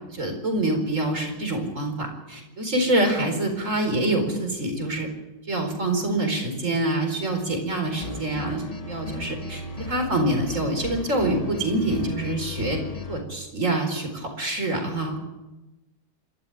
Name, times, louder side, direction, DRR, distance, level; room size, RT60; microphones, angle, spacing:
voice 1, 0.1-5.1 5.5-12.8 13.1-15.2, right 1 dB, 45° right, 5 dB, 4.8 m, -26 dB
sound 1, 7.9-13.2, left 3 dB, 25° left, 1.3 m, -36 dB
26.5 x 13.5 x 9.4 m, 1.1 s
omnidirectional pair, 1.9 m